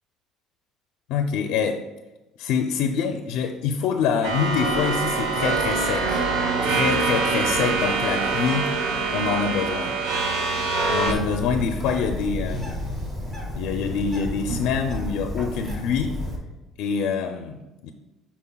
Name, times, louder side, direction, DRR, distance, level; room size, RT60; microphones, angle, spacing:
voice 1, 1.1-1.8 2.4-6.2 6.6-8.7 9.1-9.9 10.9-12.8 13.6-16.2 16.8-17.9, left 6 dB, 75° left, 5 dB, 0.4 m, -25 dB
sound 1, 4.2-11.1, right 4 dB, 85° right, 0.9 m, -24 dB
Bird, 11.1-16.4, left 1 dB, 20° right, 2.0 m, -31 dB
11.5 x 4.2 x 2.3 m, 1.1 s
cardioid pair, 150°, 0 cm